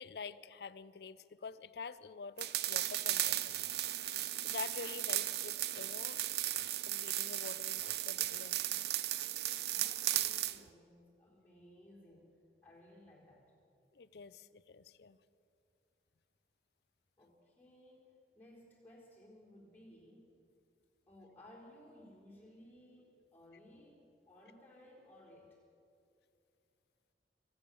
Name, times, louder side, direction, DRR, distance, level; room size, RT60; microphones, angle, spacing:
voice 1, 0.0-3.7 4.4-6.2 6.5-8.9 13.9-15.2, left 5 dB, 65° left, 0.5 m, -47 dB
sound 1, 2.4-10.6, right 13 dB, 65° right, 0.5 m, -36 dB
voice 2, 9.6-12.3 12.6-13.5 17.2-20.3 21.1-25.6, left 1 dB, 10° left, 3.8 m, -59 dB
23.5 x 8.9 x 6.9 m
head